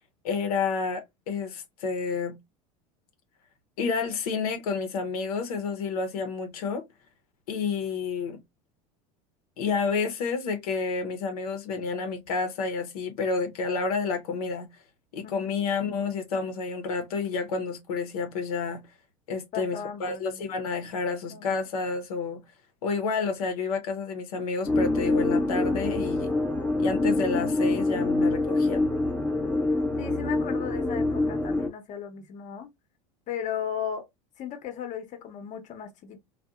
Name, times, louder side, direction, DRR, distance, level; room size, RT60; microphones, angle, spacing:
voice 1, 0.2-2.4 3.8-6.8 7.5-8.4 9.6-14.7 15.1-18.8 19.3-22.4 22.8-26.3 26.8-28.9, left 4 dB, 80° left, 0.6 m, -30 dB
voice 2, 15.2-15.5 19.5-20.5 21.3-21.6 30.0-32.7 33.3-34.1 34.4-36.2, left 8 dB, 40° left, 0.8 m, -36 dB
sound 1, 24.7-31.7, left 2 dB, 5° left, 0.5 m, -25 dB
2.6 x 2.1 x 2.2 m
hypercardioid pair, 90°, 19 cm